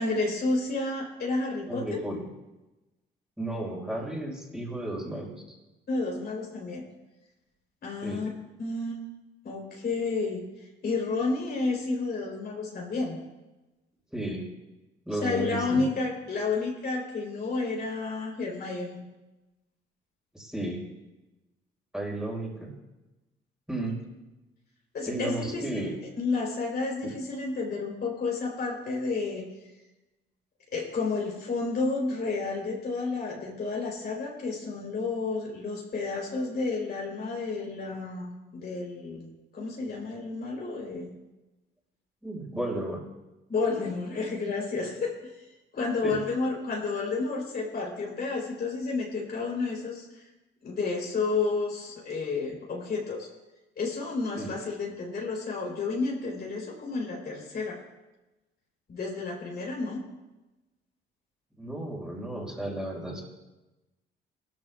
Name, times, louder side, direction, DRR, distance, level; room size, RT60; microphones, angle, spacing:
voice 1, 0.0-2.0 5.9-6.9 7.8-8.3 8.6-9.0 9.4-10.4 10.8-13.2 15.2-19.0 24.9-25.9 26.2-29.5 30.7-41.2 43.5-45.3 45.7-50.2 50.6-53.3 53.8-57.8 58.9-60.0, left 3 dB, 55° left, -2 dB, 3.8 m, -31 dB
voice 2, 1.7-2.2 3.4-5.6 8.0-8.2 14.1-14.4 15.0-15.8 20.3-20.8 21.9-22.7 23.7-24.0 25.1-25.9 27.0-27.1 42.2-43.0 46.0-46.2 54.4-54.5 61.6-63.2, right 1 dB, 5° right, -3 dB, 4.7 m, -33 dB
18.0 x 13.5 x 2.4 m, 1.0 s
cardioid pair, 90°, 20 cm